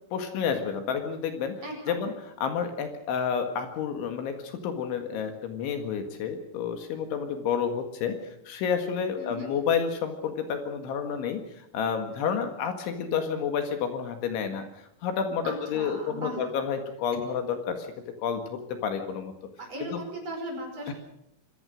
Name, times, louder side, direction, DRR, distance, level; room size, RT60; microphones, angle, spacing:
voice 1, 0.1-1.6 1.9-2.1 2.4-8.2 8.5-14.6 15.0-17.9 18.2-19.3 19.8-20.0 20.9-21.0, left 7 dB, 70° left, 7 dB, 4.0 m, -30 dB
voice 2, 1.6-2.0 9.2-9.5 15.4-16.4 19.6-20.9, right 1 dB, 30° right, 2 dB, 6.1 m, -37 dB
25.5 x 18.0 x 6.5 m, 0.78 s
omnidirectional pair, 5.9 m